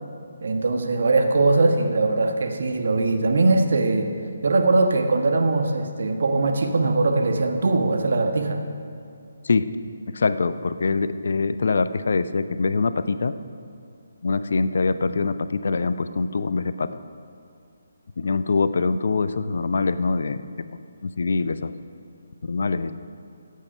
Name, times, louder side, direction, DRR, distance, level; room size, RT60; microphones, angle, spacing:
voice 1, 0.4-4.1 4.4-8.6, right 3 dB, 60° right, 4 dB, 1.3 m, -21 dB
voice 2, 10.1-13.3 14.2-17.0 18.2-20.4 21.0-21.7 22.4-22.9, left 4 dB, 60° left, 13 dB, 0.5 m, -24 dB
15.0 x 8.3 x 5.6 m, 2.3 s
figure-of-eight pair, 145°, 0 cm